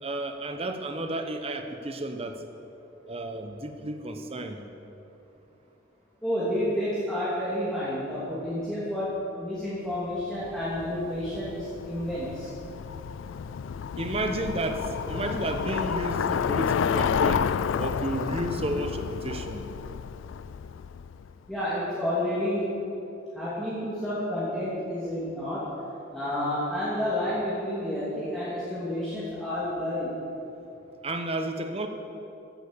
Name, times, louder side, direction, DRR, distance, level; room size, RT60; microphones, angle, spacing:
voice 1, 0.0-2.4 3.1-4.6 14.0-17.5 17.8-19.6 31.0-31.9, right 1 dB, 30° right, 6 dB, 1.0 m, -32 dB
voice 2, 6.2-12.5 21.5-22.7 23.3-25.7 26.1-30.2, left 1 dB, 5° left, -11 dB, 2.7 m, -30 dB
Bicycle, 10.4-21.3, left 7 dB, 85° left, 0.3 m, -30 dB
15.5 x 9.0 x 6.9 m, 3.0 s
head